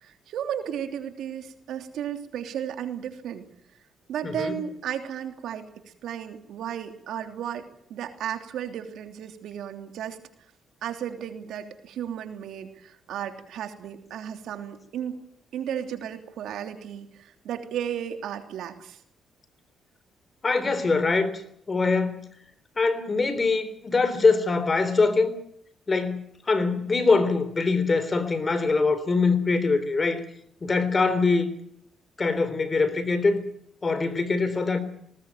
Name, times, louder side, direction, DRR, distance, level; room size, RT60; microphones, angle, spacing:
voice 1, 0.0-3.5 4.1-5.7 6.0-7.6 7.9-10.2 10.8-15.2 15.5-19.0, right 9 dB, 80° right, 3.1 m, -34 dB
voice 2, 4.2-4.5 20.4-21.4 21.7-22.2 22.8-25.4 25.9-26.2 26.5-30.2 30.6-31.5 32.2-33.4 33.8-34.8, left 4 dB, 30° left, 3.5 m, -23 dB
20.0 x 19.5 x 9.2 m
cardioid pair, 90°, 0 cm